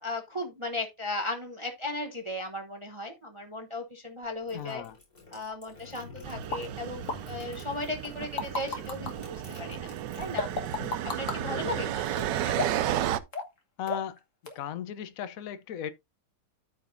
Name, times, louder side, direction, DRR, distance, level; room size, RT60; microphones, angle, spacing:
voice 1, 0.0-4.8 5.3-9.9 10.2-10.5 11.0-12.6, left 2 dB, 40° right, 0.4 m, -36 dB
sound 1, 4.2-11.0 11.3-13.1, left 4 dB, 25° left, 5.3 m, -49 dB
voice 2, 4.5-4.9 10.8-11.0 11.4-11.9 13.8-14.2 14.5-15.9, left 9 dB, 65° left, 0.8 m, -37 dB
sound 2, 6.2-13.2, right 12 dB, 70° right, 1.1 m, -33 dB
sound 3, 6.5-6.6 7.1-7.2 8.0-9.1 10.4-11.4 12.5-12.9 13.3-13.6 13.9-14.2 14.5-14.6, left 3 dB, 40° left, 1.7 m, -32 dB
13.5 x 5.2 x 2.6 m
omnidirectional pair, 2.4 m